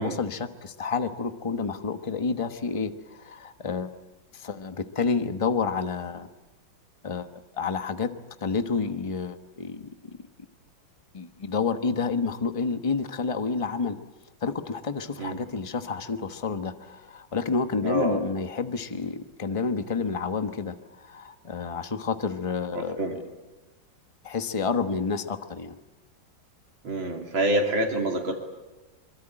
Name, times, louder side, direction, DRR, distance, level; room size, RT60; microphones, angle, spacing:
voice 1, 0.0-3.9 4.3-6.3 7.0-7.3 7.5-8.1 8.4-10.2 11.1-14.0 14.4-23.2 24.2-25.8, left 5 dB, 20° left, 9 dB, 1.0 m, -29 dB
voice 2, 17.8-18.2 22.7-23.2 26.8-28.3, right 1 dB, 90° right, 1 dB, 3.6 m, -27 dB
25.0 x 22.5 x 8.9 m, 1.1 s
omnidirectional pair, 2.1 m